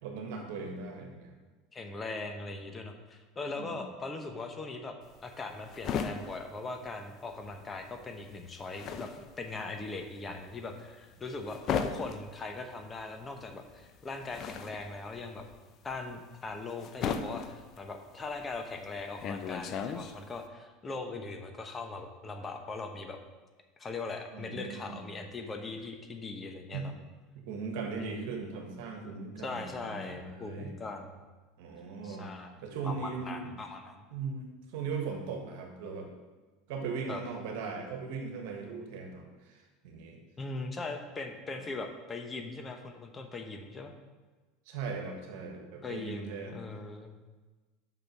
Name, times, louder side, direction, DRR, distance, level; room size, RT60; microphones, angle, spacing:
voice 1, 0.0-1.3 3.5-3.8 24.3-25.0 26.7-26.9 27.3-30.7 31.6-32.3 32.6-33.5 34.1-36.1 36.7-40.2 41.5-41.6 44.7-46.6, right 5 dB, 70° right, 3 dB, 1.4 m, -39 dB
voice 2, 1.7-5.0 5.2-15.4 15.8-23.2 23.8-26.9 28.0-28.4 29.4-31.2 32.0-32.5 32.8-34.1 37.1-37.2 40.4-43.9 45.8-47.1, left 3 dB, 25° left, 5 dB, 0.9 m, -40 dB
sound 1, 5.0-7.6 7.8-20.5, left 6 dB, 45° left, 0.6 m, -37 dB
5.9 x 5.3 x 6.0 m, 1.3 s
hypercardioid pair, 100°, 0 cm